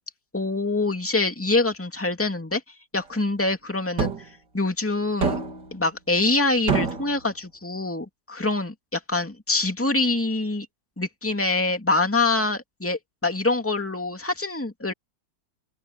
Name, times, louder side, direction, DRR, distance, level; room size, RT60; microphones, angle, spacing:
voice 1, 0.3-2.6 2.9-4.1 4.5-5.4 5.7-10.7 11.0-14.9, left 3 dB, 5° left, 2.3 m, -25 dB
sound 1, 4.0-4.3 5.2-5.7 6.7-7.2, right 4 dB, 65° right, 3.0 m, -25 dB
open air
omnidirectional pair, 2.0 m